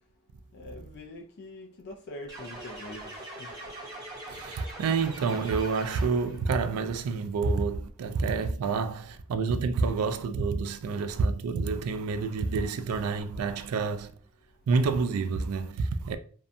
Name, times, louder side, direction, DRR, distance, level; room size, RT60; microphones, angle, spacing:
voice 1, 0.5-3.1 3.4-3.5, left 1 dB, 50° left, 0.4 m, -43 dB
sound 1, 2.3-6.4, right 1 dB, 20° right, 0.8 m, -42 dB
voice 2, 4.3-14.1 14.7-16.2, right 4 dB, 85° right, 0.3 m, -28 dB
2.5 x 2.1 x 2.5 m
head